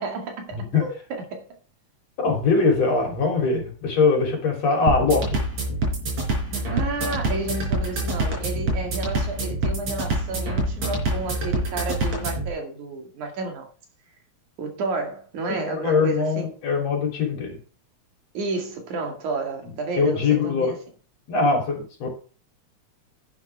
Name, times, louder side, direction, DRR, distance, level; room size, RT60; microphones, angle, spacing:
voice 1, 0.0-1.5 6.5-13.7 14.6-16.5 18.3-20.8, right 3 dB, 80° right, 3.7 m, -31 dB
voice 2, 0.5-0.8 2.2-5.4 15.5-17.6 19.9-20.8 21.3-22.1, left 4 dB, 60° left, 4.4 m, -22 dB
sound 1, 4.9-12.5, right 1 dB, 60° right, 5.6 m, -26 dB
11.0 x 9.6 x 3.5 m
omnidirectional pair, 3.4 m